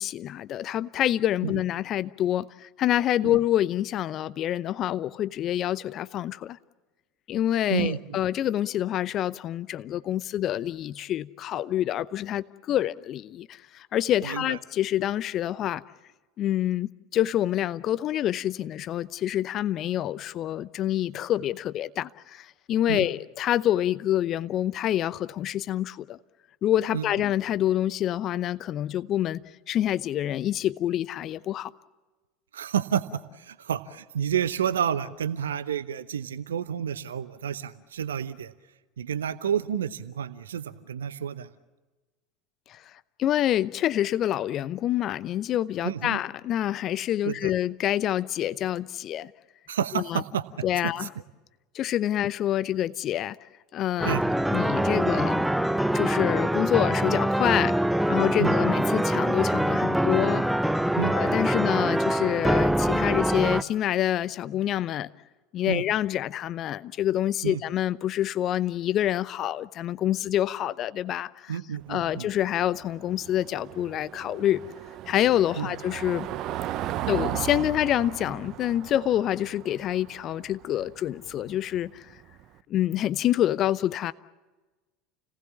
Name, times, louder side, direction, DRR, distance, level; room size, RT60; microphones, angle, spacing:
voice 1, 0.0-6.6 7.3-15.8 16.4-26.2 26.6-29.4 29.7-31.7 42.7-42.8 43.2-49.3 49.9-50.2 50.6-51.1 51.7-53.4 53.7-54.2 54.5-55.5 55.9-57.8 58.1-60.4 61.1-65.1 65.5-71.6 71.9-74.6 75.1-76.3 77.1-82.1 82.7-84.1, left 12 dB, 45° left, 0.7 m, -27 dB
voice 2, 7.7-8.2 14.2-14.6 22.9-23.0 26.9-27.0 32.5-38.5 39.0-41.5 45.8-46.2 47.2-47.5 49.7-50.4 51.0-51.1 54.0-54.2 58.4-58.5 61.0-61.1 65.7-65.8 67.4-67.6 71.5-72.3 75.6-75.7, right 9 dB, 75° right, 0.8 m, -30 dB
sound 1, 54.0-63.6, right 1 dB, 5° right, 0.8 m, -24 dB
Car passing by / Engine, 71.8-82.4, right 13 dB, 45° right, 0.9 m, -36 dB
29.5 x 19.0 x 7.3 m
figure-of-eight pair, 75°, 0 cm